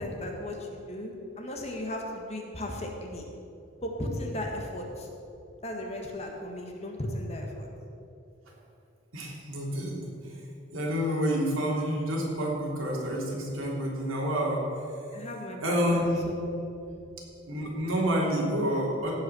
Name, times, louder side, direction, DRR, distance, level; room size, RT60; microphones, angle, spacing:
voice 1, 0.0-3.2 3.8-5.1 5.6-7.7 15.1-16.6, left 1 dB, 30° left, 1 dB, 1.7 m, -36 dB
voice 2, 9.1-10.4 10.7-14.6 15.6-16.2 17.5-19.1, equal, 90° right, -3 dB, 3.1 m, -28 dB
16.5 x 5.8 x 7.0 m, 2.7 s
head